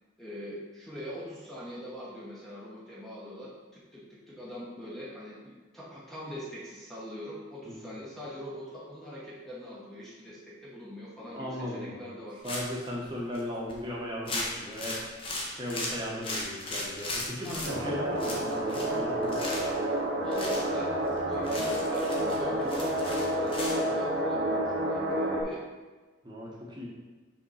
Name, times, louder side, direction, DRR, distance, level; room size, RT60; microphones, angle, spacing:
voice 1, 0.2-12.4 17.4-17.8 20.1-25.6, equal, ahead, -7 dB, 1.0 m, -43 dB
voice 2, 11.2-12.0 12.4-15.1 15.5-19.7 26.2-26.9, equal, 20° right, -4 dB, 1.1 m, -37 dB
sound 1, 12.4-12.9 13.3-13.4 13.7-13.8 14.3-17.7 18.2-19.0 19.2-19.8 20.3-20.6 21.1-21.2 21.4-23.8, left 2 dB, 25° left, 1.0 m, -36 dB
sound 2, 17.6-25.4, right 1 dB, 65° right, 1.2 m, -29 dB
5.5 x 3.7 x 5.5 m, 1.2 s
head